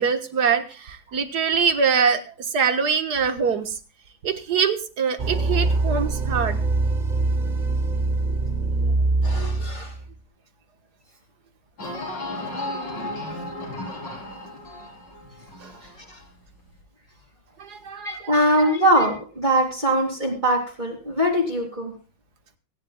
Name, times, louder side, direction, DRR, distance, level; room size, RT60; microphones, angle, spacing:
voice 1, 0.0-3.8 4.2-6.6 15.6-15.7 17.6-18.3 18.6-18.7, right 6 dB, 60° right, 8 dB, 1.8 m, -24 dB
sound 1, 5.2-10.1, right 2 dB, 45° right, 0.6 m, -23 dB
voice 2, 9.2-9.9 16.1-16.2 17.9-21.9, right 1 dB, 25° right, -2 dB, 2.7 m, -22 dB
sound 2, 11.8-16.3 16.7-16.8, left 1 dB, 65° left, 4.9 m, -34 dB
23.5 x 10.5 x 2.3 m, 0.34 s
omnidirectional pair, 2.1 m